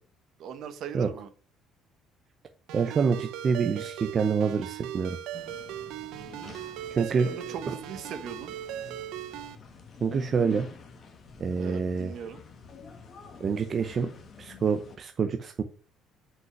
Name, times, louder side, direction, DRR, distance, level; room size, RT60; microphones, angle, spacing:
voice 1, 0.4-1.3 6.1-8.5 11.5-12.4, right 7 dB, 55° right, 10 dB, 1.3 m, -40 dB
voice 2, 2.7-5.2 6.9-7.3 7.7-7.8 10.0-10.7 11.4-12.1 13.4-14.1 14.4-15.6, right 5 dB, 30° right, 6 dB, 0.7 m, -27 dB
Ringtone, 2.7-9.6, right 11 dB, 75° right, 0.8 m, -39 dB
sound 1, 5.3-15.0, left 4 dB, 35° left, 1.6 m, -48 dB
6.3 x 5.3 x 5.9 m, 0.38 s
cardioid pair, 145°, 0 cm